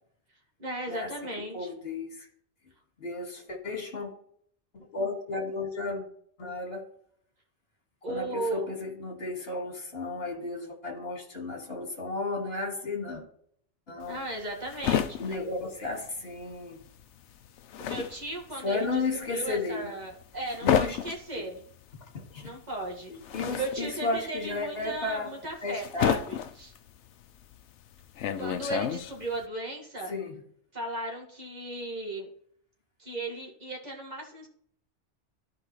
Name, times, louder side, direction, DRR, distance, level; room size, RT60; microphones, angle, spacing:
voice 1, 0.6-1.7 8.0-8.7 14.0-15.4 17.8-19.0 19.3-21.6 22.4-23.1 23.5-26.7 28.4-30.1 30.7-32.3 33.0-34.5, right 2 dB, 35° right, -2 dB, 2.1 m, -36 dB
voice 2, 1.5-2.3 3.0-4.1 4.7-6.0 6.4-6.9 8.1-13.2 13.9-14.2 15.2-16.8 18.6-19.9 20.6-21.0 21.3-21.4 22.3-22.5 23.1-25.3 25.6-26.2 30.0-30.4, left 3 dB, 60° left, 1 dB, 2.2 m, -33 dB
sound 1, 14.0-16.6 16.8-29.4, left 9 dB, 80° left, 0.9 m, -32 dB
13.5 x 4.9 x 3.2 m, 0.64 s
omnidirectional pair, 1.2 m